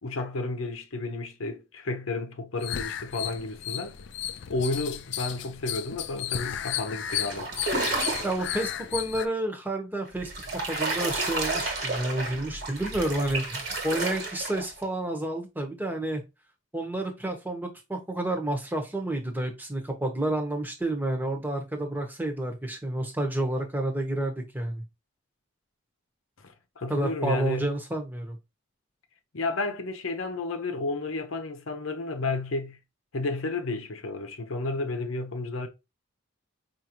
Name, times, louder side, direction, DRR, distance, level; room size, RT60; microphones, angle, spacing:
voice 1, 0.0-4.0 4.5-7.5 26.8-27.7 29.3-32.8 33.1-35.7, left 2 dB, 85° left, 0.7 m, -32 dB
sound 1, 2.6-9.3, left 10 dB, 60° left, 0.4 m, -34 dB
sound 2, 7.1-8.5 10.1-14.8, right 2 dB, 50° right, 1.3 m, -31 dB
voice 2, 8.2-16.2 16.7-24.8 26.9-28.4, right 1 dB, 10° right, 0.9 m, -30 dB
5.0 x 2.6 x 2.8 m
head